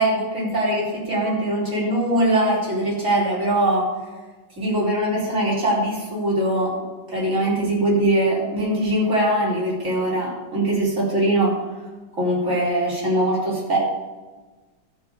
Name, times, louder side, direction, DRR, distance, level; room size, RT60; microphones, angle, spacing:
voice 1, 0.0-3.9 4.6-6.8 7.1-11.6 12.1-13.8, right 1 dB, 40° right, -6 dB, 4.8 m, -22 dB
13.0 x 5.5 x 7.1 m, 1.3 s
omnidirectional pair, 2.1 m